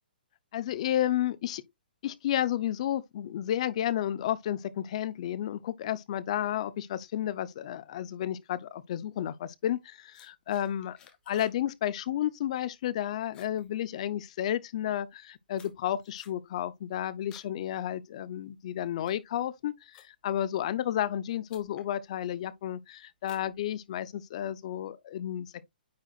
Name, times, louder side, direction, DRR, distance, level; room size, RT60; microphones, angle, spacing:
voice 1, 0.5-1.6 2.0-11.0 11.3-25.6, left 11 dB, 40° left, 0.6 m, -32 dB
sound 1, 10.1-11.6 11.9-12.3 12.6-13.0 13.2-14.4 15.0-17.6 17.9-18.3 18.8-20.4 21.1-21.2 21.5-21.9 22.4-22.8 23.2-24.2, left 7 dB, 15° left, 1.0 m, -58 dB
9.3 x 4.6 x 2.4 m
hypercardioid pair, 160°, 5 cm